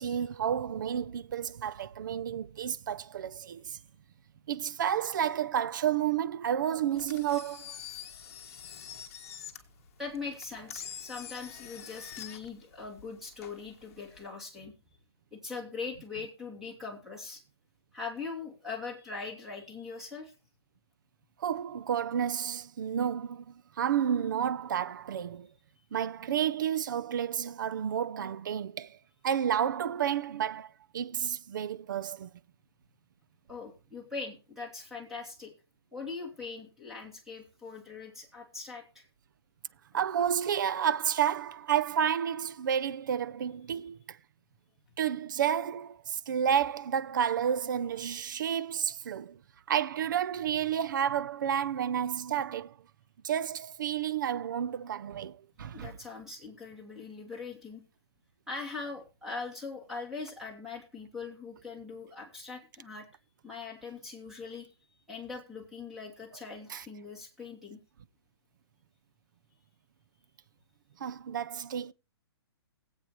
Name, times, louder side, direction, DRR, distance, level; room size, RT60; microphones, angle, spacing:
voice 1, 0.0-3.8 4.5-7.8 21.4-25.5 25.9-29.0 29.2-32.3 39.9-44.2 45.0-49.4 49.7-52.7 53.2-56.0 66.7-66.9 71.0-71.9, right 9 dB, 50° right, 0.6 m, -31 dB
Engine, 6.9-14.3, left 10 dB, 35° left, 1.4 m, -46 dB
voice 2, 10.0-14.7 15.3-17.4 17.9-20.3 33.5-35.5 35.9-39.1 55.7-57.8 58.5-63.1 63.4-64.7 65.1-67.8, left 4 dB, ahead, 2.6 m, -41 dB
19.5 x 8.3 x 3.0 m
hypercardioid pair, 170°, 14 cm